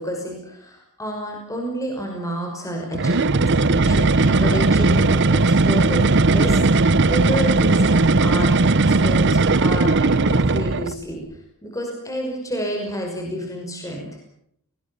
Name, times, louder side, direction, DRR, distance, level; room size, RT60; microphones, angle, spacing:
voice 1, 0.0-8.5 8.9-11.2 11.6-14.1, equal, 15° left, 1 dB, 5.8 m, -29 dB
sound 1, 2.9-11.0, right 3 dB, 55° right, 0.9 m, -17 dB
29.5 x 20.5 x 7.1 m, 0.71 s
head